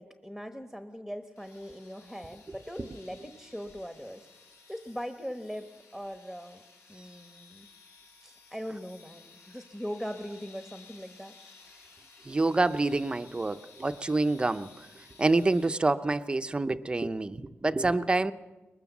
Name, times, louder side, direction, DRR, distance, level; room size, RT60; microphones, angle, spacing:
voice 1, 0.0-4.3 4.7-6.6 6.9-7.7 8.2-11.3, equal, 5° left, 8 dB, 1.1 m, -40 dB
sound 1, 1.3-16.1, left 4 dB, 80° left, 4.7 m, -56 dB
voice 2, 12.3-14.9 15.2-18.3, right 2 dB, 20° right, 11 dB, 0.7 m, -27 dB
22.5 x 20.5 x 7.2 m, 1.2 s
wide cardioid pair, 140°, 4 cm